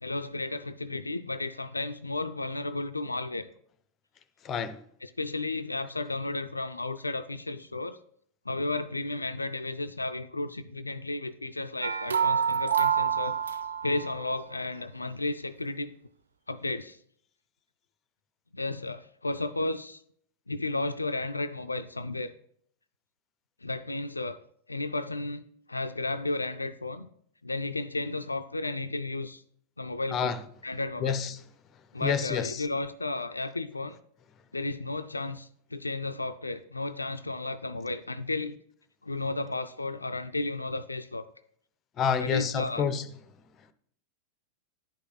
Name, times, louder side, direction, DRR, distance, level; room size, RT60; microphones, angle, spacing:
voice 1, 0.0-3.5 5.0-8.0 8.5-13.4 13.8-15.9 16.5-17.0 18.5-20.0 20.5-22.3 23.6-24.4 24.7-27.1 27.4-29.4 29.8-30.4 30.6-31.2 31.9-34.0 34.5-38.6 39.0-41.2 42.2-42.9, left 2 dB, 80° left, 0.3 m, -33 dB
voice 2, 4.4-4.8 30.1-30.4 31.0-31.3 32.0-32.6 42.0-43.0, left 7 dB, 30° left, 0.6 m, -28 dB
sound 1, 11.8-14.3, right 7 dB, 70° right, 0.4 m, -27 dB
10.5 x 5.5 x 3.9 m
figure-of-eight pair, 90°, 0 cm